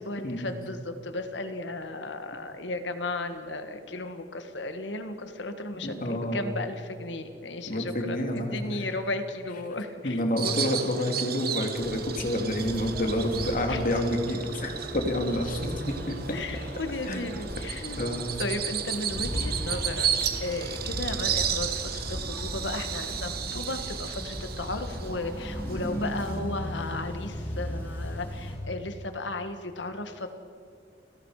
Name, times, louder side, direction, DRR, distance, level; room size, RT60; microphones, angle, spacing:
voice 1, 0.0-10.7 13.7-13.8 16.3-18.0 18.4-20.1 20.4-30.3, left 2 dB, 90° left, 8 dB, 1.8 m, -35 dB
voice 2, 5.8-6.4 7.7-8.6 10.0-16.4 17.1-17.3 18.0-18.3 25.6-26.0, left 1 dB, 50° left, 3 dB, 2.7 m, -29 dB
Bird vocalization bird call bird song, 10.4-26.4, right 8 dB, 60° right, 1.3 m, -34 dB
sound 1, 11.8-28.5, equal, 15° left, 6.1 m, -37 dB
30.0 x 17.5 x 5.0 m, 2.3 s
head